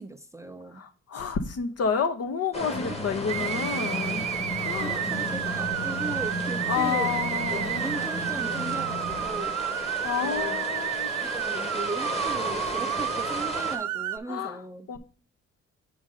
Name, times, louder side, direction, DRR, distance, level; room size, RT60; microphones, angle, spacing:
voice 1, 0.0-0.8 2.8-3.0 4.8-7.2 7.5-9.9 10.2-11.0 11.2-15.0, right 2 dB, 10° right, 7 dB, 0.6 m, -38 dB
voice 2, 0.8-4.2 4.6-5.0 6.7-7.8 10.0-11.1 14.3-14.6 14.9-15.0, left 6 dB, 55° left, 9 dB, 1.0 m, -29 dB
sound 1, 2.5-13.8, left 1 dB, 20° left, 1.4 m, -35 dB
sound 2, 2.7-9.5, left 1 dB, 35° left, 2.4 m, -36 dB
sound 3, 3.3-14.2, right 13 dB, 70° right, 0.5 m, -31 dB
6.4 x 4.9 x 3.8 m, 0.39 s
cardioid pair, 90°, 30 cm